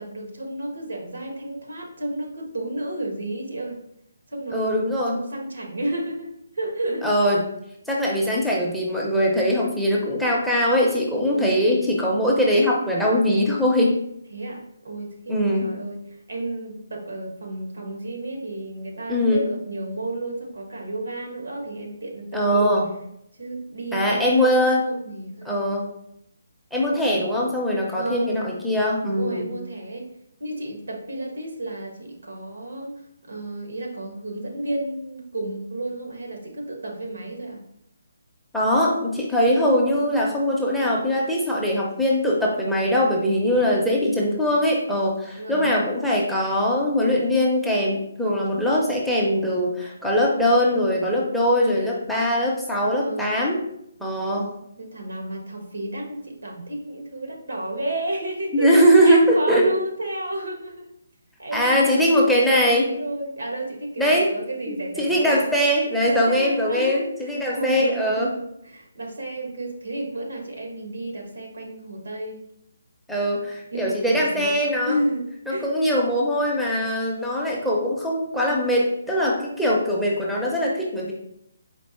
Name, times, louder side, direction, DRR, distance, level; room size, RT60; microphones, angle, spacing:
voice 1, 0.0-3.8 4.3-7.1 11.3-11.7 14.3-22.7 23.4-25.6 26.9-27.3 27.9-28.5 29.1-30.1 30.4-37.6 43.7-44.3 45.3-45.9 52.8-53.3 54.8-58.7 59.0-60.9 61.4-65.5 66.1-72.4 73.7-74.6 74.8-75.7, right 1 dB, 90° right, 0 dB, 1.4 m, -32 dB
voice 2, 4.5-5.2 7.0-7.5 7.9-14.0 15.3-15.7 19.1-19.5 22.3-22.9 23.9-24.8 25.4-25.9 26.7-29.5 38.5-53.6 54.0-54.5 58.5-59.7 61.5-62.9 64.0-64.3 64.7-68.3 73.1-75.0 75.5-81.1, equal, ahead, -5 dB, 0.6 m, -21 dB
4.5 x 2.8 x 4.2 m, 0.75 s
hypercardioid pair, 165°, 0 cm